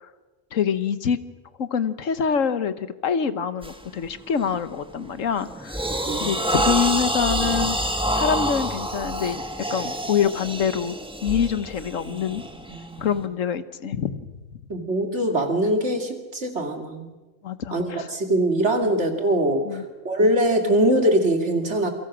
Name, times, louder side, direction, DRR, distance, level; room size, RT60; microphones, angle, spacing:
voice 1, 0.5-1.2 1.6-5.8 6.2-7.8 8.1-9.4 9.7-10.9 11.2-12.4 13.0-14.6 17.4-18.1 18.8-18.9 19.6-19.8, left 7 dB, 85° left, 13 dB, 1.5 m, -25 dB
sound 1, 3.6-3.9 4.3-4.6 5.1-13.2, equal, 5° right, 1.7 m, -27 dB
voice 2, 12.7-13.1 14.7-17.1 17.7-21.9, right 1 dB, 60° right, 4 dB, 3.0 m, -22 dB
28.0 x 23.5 x 6.3 m, 1.2 s
omnidirectional pair, 1.3 m